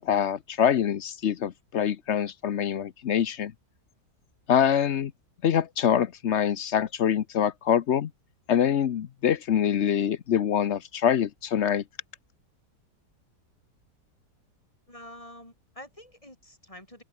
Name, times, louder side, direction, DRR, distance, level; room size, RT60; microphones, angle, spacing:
voice 1, 0.0-3.5 4.5-5.1 5.4-8.1 8.5-11.8, left 9 dB, 55° left, 0.9 m, -25 dB
voice 2, 14.9-17.0, left 1 dB, 20° left, 7.7 m, -47 dB
open air
omnidirectional pair, 1.8 m